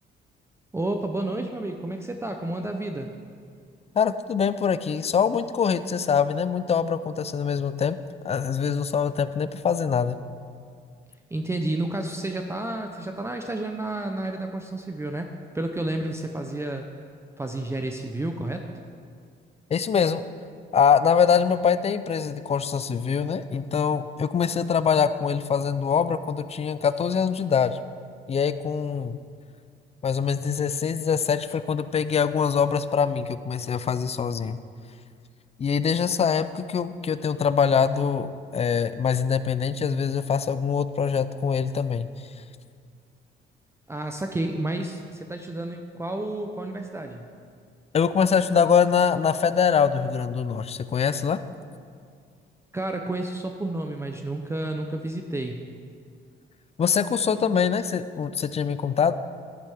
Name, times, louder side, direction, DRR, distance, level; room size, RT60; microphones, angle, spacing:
voice 1, 0.7-3.1 11.3-16.8 17.4-18.6 43.9-47.3 52.7-55.6, right 2 dB, 15° right, 4 dB, 0.6 m, -30 dB
voice 2, 3.9-8.0 8.2-10.2 19.7-20.2 20.7-27.8 28.3-29.2 30.0-34.6 35.6-42.1 47.9-51.4 56.8-59.1, left 6 dB, 30° left, 13 dB, 0.4 m, -24 dB
10.5 x 9.8 x 3.5 m, 2.2 s
cardioid pair, 90°, 20 cm